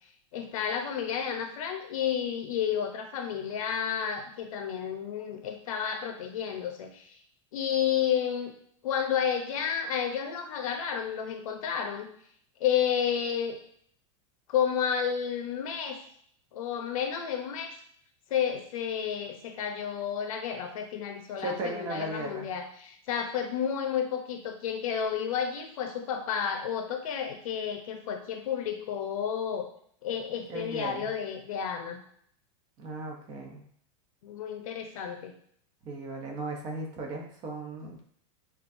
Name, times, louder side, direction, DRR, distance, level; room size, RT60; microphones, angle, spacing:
voice 1, 0.3-7.1 7.5-8.5 8.8-12.1 12.6-13.6 14.5-16.0 16.5-17.7 18.3-29.7 30.0-32.0 34.2-35.3, left 8 dB, 75° left, 5 dB, 0.8 m, -31 dB
voice 2, 21.4-22.5 30.5-31.1 32.8-33.6 35.8-38.0, right 2 dB, 25° right, 1 dB, 0.7 m, -36 dB
6.9 x 2.6 x 2.6 m, 0.63 s
supercardioid pair, 175°, 18 cm